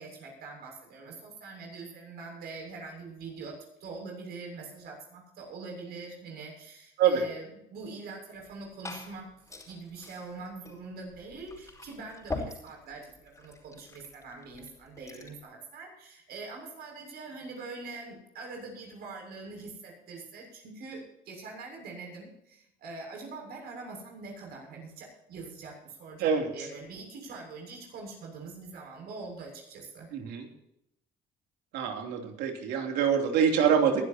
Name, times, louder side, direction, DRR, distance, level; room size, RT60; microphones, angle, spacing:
voice 1, 0.0-9.3 9.7-30.1, right 3 dB, 70° right, 1 dB, 6.8 m, -43 dB
Glass / Fill (with liquid), 8.3-15.4, left 2 dB, 20° left, 4.6 m, -44 dB
voice 2, 26.2-26.7 30.1-30.5 31.7-34.0, right 7 dB, 85° right, 3 dB, 3.2 m, -25 dB
22.0 x 12.0 x 2.9 m, 0.80 s
cardioid pair, 110°, 17 cm